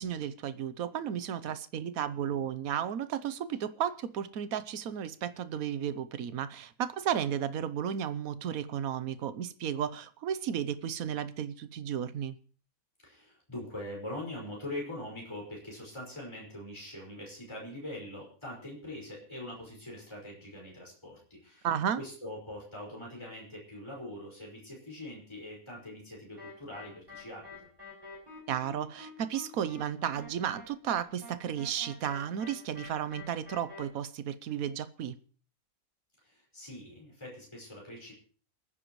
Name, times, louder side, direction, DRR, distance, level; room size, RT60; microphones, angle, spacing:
voice 1, 0.0-12.4 21.6-22.0 28.5-35.2, right 9 dB, 75° right, 1.2 m, -33 dB
voice 2, 13.0-21.7 22.0-27.7 36.2-38.1, left 1 dB, 20° left, 5.3 m, -43 dB
sound 1, 26.4-33.8, left 2 dB, 15° right, 6.6 m, -48 dB
28.0 x 9.7 x 3.1 m
omnidirectional pair, 1.5 m